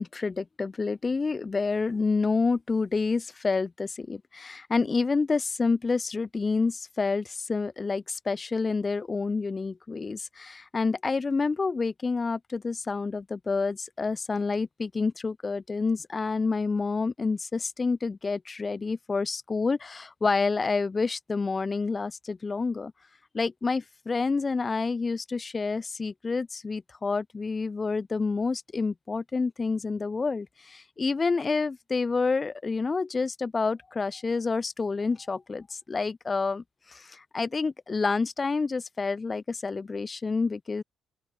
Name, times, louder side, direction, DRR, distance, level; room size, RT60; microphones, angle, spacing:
voice 1, 0.0-22.9 23.3-40.8, left 4 dB, 30° left, 1.1 m, -28 dB
open air
cardioid pair, 90°, 0 cm